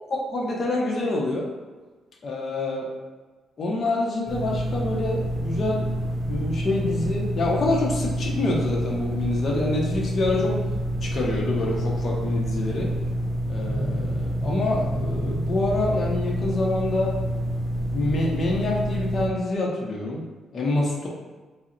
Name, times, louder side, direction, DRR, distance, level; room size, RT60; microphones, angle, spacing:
voice 1, 0.1-1.5 2.2-2.9 3.6-5.9 6.3-10.6 11.0-12.9 13.5-17.1 17.9-20.2 20.5-21.1, left 2 dB, 50° left, -3 dB, 0.7 m, -26 dB
sound 1, 4.3-19.3, equal, 35° right, 0.7 m, -28 dB
4.0 x 2.1 x 3.8 m, 1.3 s
cardioid pair, 85°, 0 cm